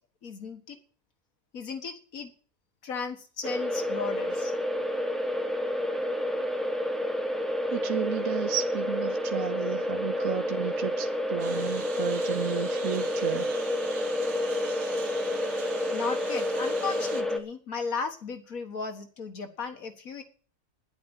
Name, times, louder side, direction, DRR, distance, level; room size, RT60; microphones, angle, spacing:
voice 1, 0.2-0.8 1.5-2.3 2.8-4.5 15.9-20.2, left 5 dB, 85° left, 2.2 m, -35 dB
sound 1, 3.4-17.4, left 1 dB, ahead, 1.1 m, -29 dB
voice 2, 7.7-13.5, right 9 dB, 70° right, 1.1 m, -32 dB
Engine, 11.4-17.2, right 6 dB, 90° right, 1.5 m, -43 dB
10.0 x 8.6 x 9.0 m
omnidirectional pair, 1.4 m